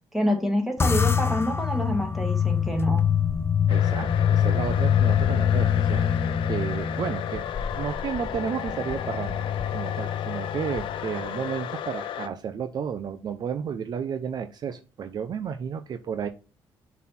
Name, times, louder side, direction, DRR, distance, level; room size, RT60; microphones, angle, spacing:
voice 1, 0.1-3.0, equal, 5° right, 2 dB, 2.1 m, -27 dB
sound 1, 0.8-11.4, left 8 dB, 30° left, 0.6 m, -25 dB
sound 2, 3.7-12.3, left 10 dB, 75° left, 0.7 m, -34 dB
voice 2, 3.7-16.3, right 7 dB, 50° right, 9 dB, 0.7 m, -32 dB
7.3 x 4.1 x 4.3 m, 0.32 s
cardioid pair, 110°, 9 cm